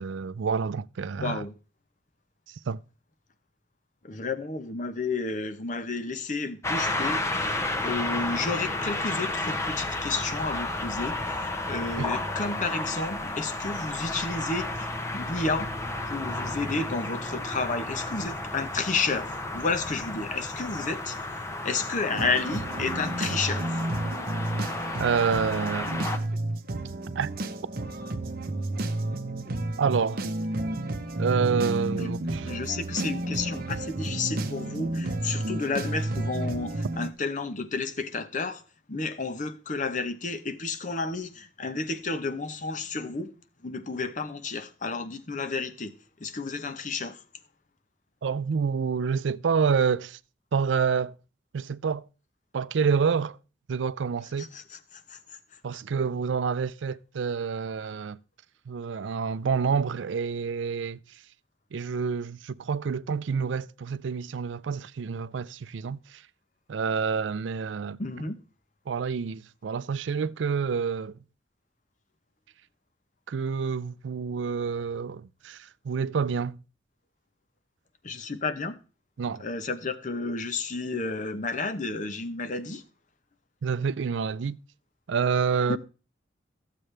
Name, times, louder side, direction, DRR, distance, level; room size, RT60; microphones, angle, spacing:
voice 1, 0.0-1.5 2.7-2.8 12.0-12.1 25.0-25.9 27.2-27.3 29.8-30.2 31.2-32.5 48.2-50.2 50.5-51.1 51.5-52.0 52.5-53.4 53.7-54.5 55.6-58.2 58.7-61.0 61.7-66.2 66.7-68.0 68.9-71.1 73.3-76.6 79.2-79.4 83.6-84.6 85.1-85.8, right 6 dB, 80° right, 0.4 m, -28 dB
voice 2, 1.1-1.5 4.0-15.7 16.1-21.2 21.6-23.8 32.0-32.1 32.4-38.6 38.9-43.3 43.6-45.9 46.2-47.2 54.4-55.2 68.0-68.4 78.0-78.8 79.4-82.8 85.7-85.8, left 3 dB, 45° left, 0.9 m, -31 dB
sound 1, 6.6-26.2, left 2 dB, 15° left, 0.9 m, -32 dB
sound 2, 22.1-37.1, right 1 dB, 50° right, 0.7 m, -31 dB
14.0 x 7.5 x 3.3 m
head